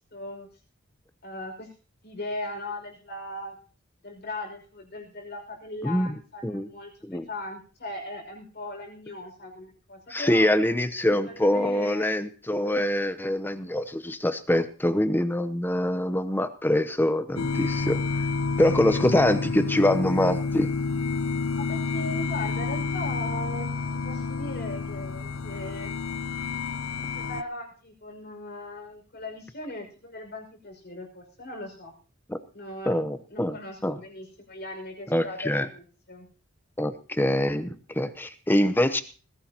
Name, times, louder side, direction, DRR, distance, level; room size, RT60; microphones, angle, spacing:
voice 1, 0.1-0.5 1.2-1.7 2.0-3.6 4.0-10.5 11.2-12.1 18.9-19.0 21.6-23.7 23.9-25.9 27.1-31.9 32.5-33.0 33.3-36.3, left 2 dB, 50° left, 2 dB, 5.5 m, -38 dB
voice 2, 5.8-6.1 6.4-6.7 7.0-7.3 10.1-18.2 18.6-20.7 32.3-32.4 32.9-34.0 35.1-35.7 36.8-39.0, left 1 dB, 10° left, 11 dB, 0.8 m, -24 dB
sound 1, 17.4-27.4, left 4 dB, 80° left, 0.7 m, -29 dB
20.0 x 16.0 x 2.9 m, 0.37 s
head